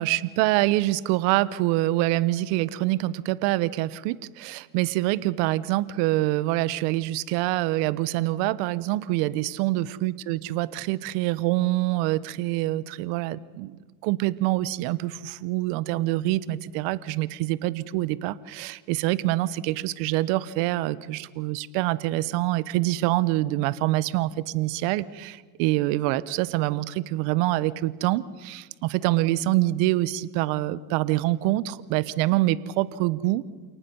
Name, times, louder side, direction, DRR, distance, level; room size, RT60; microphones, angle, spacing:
voice 1, 0.0-33.4, right 17 dB, 65° right, 17 dB, 1.1 m, -25 dB
28.0 x 18.5 x 5.5 m, 1.4 s
hypercardioid pair, 90°, 47 cm